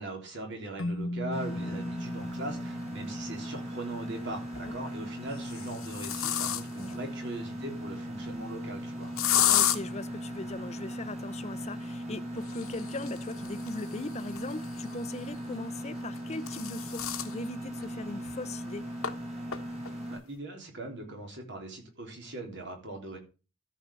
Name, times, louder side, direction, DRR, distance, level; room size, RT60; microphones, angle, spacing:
voice 1, 0.0-9.1 20.1-23.2, right 2 dB, 55° right, 3.5 m, -40 dB
Keyboard (musical), 0.8-4.0, left 1 dB, 65° left, 0.8 m, -37 dB
Mechanisms, 1.3-20.2, equal, 35° right, 5.6 m, -39 dB
sound 1, 2.8-2.9 4.3-4.8 5.3-6.9 9.2-9.8 12.4-15.0 16.0-17.3 17.8-17.9 18.3-18.4 19.0-19.1 19.5-19.9, left 11 dB, 80° left, 1.2 m, -31 dB
voice 2, 9.5-18.9, left 3 dB, 30° left, 0.6 m, -39 dB
13.5 x 5.5 x 5.2 m
head